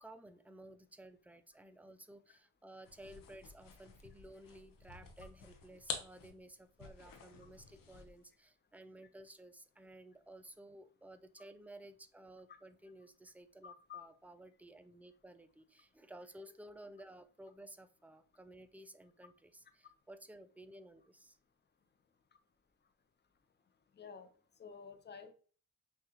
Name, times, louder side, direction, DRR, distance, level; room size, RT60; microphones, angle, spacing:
voice 1, 0.0-21.4, right 1 dB, 5° right, 10 dB, 0.3 m, -55 dB
sound 1, 2.8-8.3, left 6 dB, 80° left, 0.9 m, -49 dB
voice 2, 13.6-14.0 24.0-24.3 24.6-25.3, left 6 dB, 30° left, 8 dB, 0.7 m, -51 dB
6.0 x 2.3 x 2.9 m, 0.40 s
cardioid pair, 90°, 33 cm